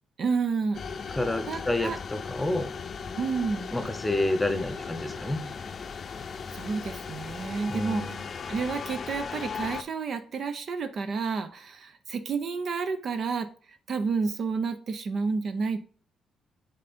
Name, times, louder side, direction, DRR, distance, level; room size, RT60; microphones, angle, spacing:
voice 1, 0.2-0.8 1.5-2.0 3.2-3.7 6.5-8.1 8.5-13.5 13.9-15.8, right 5 dB, 55° right, 10 dB, 0.7 m, -30 dB
sound 1, 0.7-9.8, left 5 dB, 45° left, 0.6 m, -37 dB
voice 2, 1.1-2.7 3.7-5.4 7.7-8.2, left 1 dB, 10° left, 10 dB, 0.9 m, -29 dB
7.1 x 3.9 x 4.3 m, 0.42 s
cardioid pair, 90°, 0 cm